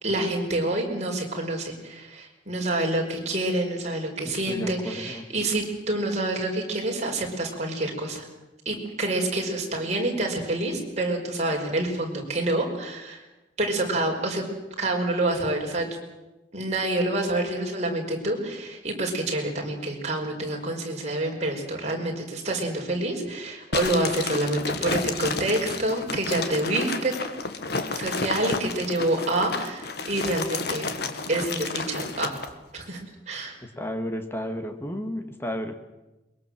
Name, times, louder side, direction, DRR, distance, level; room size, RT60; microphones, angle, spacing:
voice 1, 0.0-8.2 8.6-13.2 13.6-14.4 14.8-15.9 16.5-27.1 27.9-30.9 31.3-32.3 32.7-33.0 33.3-33.5, right 2 dB, 40° right, 1 dB, 5.1 m, -27 dB
voice 2, 4.2-5.3 33.6-35.7, equal, 15° left, 6 dB, 2.0 m, -33 dB
sound 1, 23.7-32.5, left 4 dB, 60° left, 1.7 m, -31 dB
22.5 x 22.0 x 7.7 m, 1.0 s
head